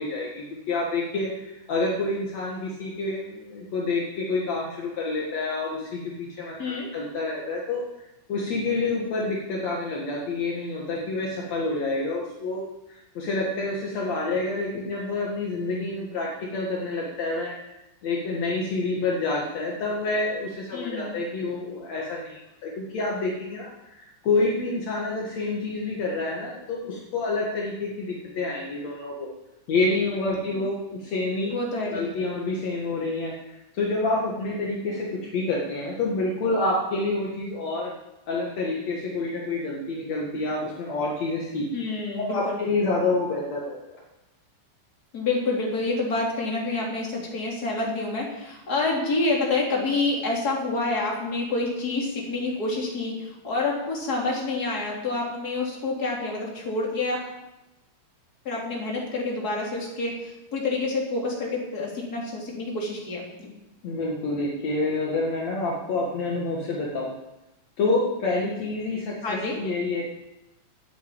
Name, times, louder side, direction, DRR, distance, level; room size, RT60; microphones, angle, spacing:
voice 1, 0.0-7.8 8.3-12.6 12.9-17.5 18.0-29.3 29.7-31.5 31.9-33.3 33.7-37.9 38.3-41.7 42.2-44.0 63.8-67.1 67.8-70.0, left 3 dB, 70° left, -3 dB, 1.6 m, -28 dB
voice 2, 6.6-6.9 20.7-21.1 30.5-30.6 31.5-32.1 41.7-42.6 45.1-57.2 58.4-63.5 69.2-69.6, left 3 dB, 25° left, -2 dB, 2.7 m, -28 dB
11.5 x 8.7 x 8.6 m, 0.95 s
omnidirectional pair, 5.9 m